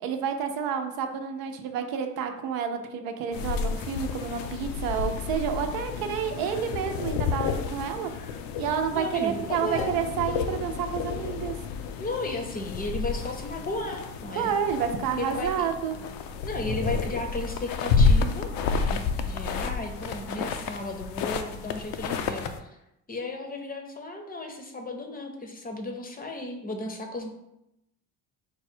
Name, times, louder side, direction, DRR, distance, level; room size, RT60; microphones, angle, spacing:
voice 1, 0.0-8.1 8.6-11.5 14.4-16.0, right 7 dB, 85° right, 6 dB, 0.6 m, -29 dB
sound 1, 3.3-22.6, left 5 dB, 80° left, 0.5 m, -30 dB
voice 2, 8.9-9.9 12.0-14.6 15.2-15.5 16.4-22.8 23.1-27.3, left 2 dB, 25° left, 4 dB, 0.6 m, -34 dB
4.6 x 2.2 x 4.3 m, 0.86 s
cardioid pair, 130°, 34 cm